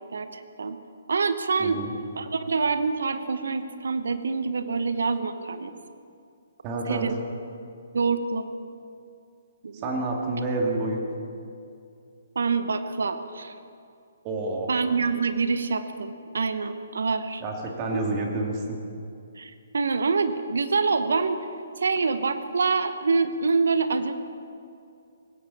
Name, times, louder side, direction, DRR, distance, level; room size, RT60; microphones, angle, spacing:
voice 1, 0.1-0.8 1.1-1.8 2.2-5.7 6.9-7.2 7.9-8.5 9.6-9.9 12.3-13.5 14.7-17.4 19.4-21.4 21.8-24.1, right 4 dB, 70° right, 10 dB, 1.0 m, -26 dB
voice 2, 1.6-1.9 6.6-7.1 9.8-11.0 14.2-14.7 17.4-18.8, right 2 dB, 30° right, 1 dB, 2.6 m, -28 dB
19.5 x 16.5 x 4.3 m, 2.5 s
figure-of-eight pair, 130°, 0 cm